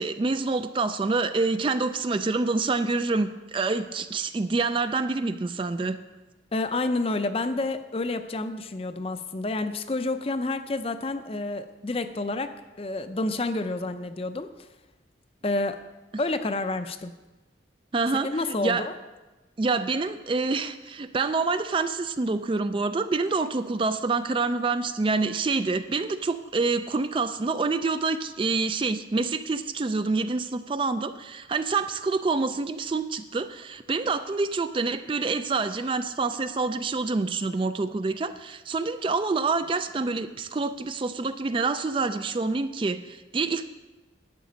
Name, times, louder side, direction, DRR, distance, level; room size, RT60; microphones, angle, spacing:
voice 1, 0.0-6.0 17.9-18.9 19.6-43.6, right 3 dB, 25° right, 11 dB, 0.3 m, -27 dB
voice 2, 6.5-12.5 12.8-14.5 15.4-15.8 16.2-17.1 18.2-18.9, left 2 dB, 30° left, 10 dB, 0.5 m, -29 dB
11.0 x 8.4 x 5.1 m, 1.1 s
head